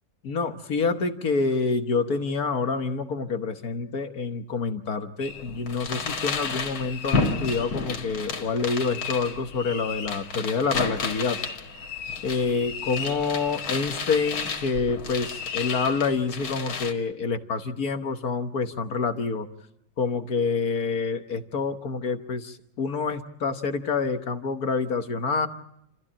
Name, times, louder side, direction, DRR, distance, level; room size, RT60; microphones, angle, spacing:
voice 1, 0.2-11.4 12.2-19.5 20.0-25.5, left 4 dB, 55° left, 8 dB, 1.6 m, -27 dB
sound 1, 5.2-16.9, left 4 dB, 85° left, 2.8 m, -32 dB
29.0 x 14.5 x 8.7 m, 0.80 s
omnidirectional pair, 2.1 m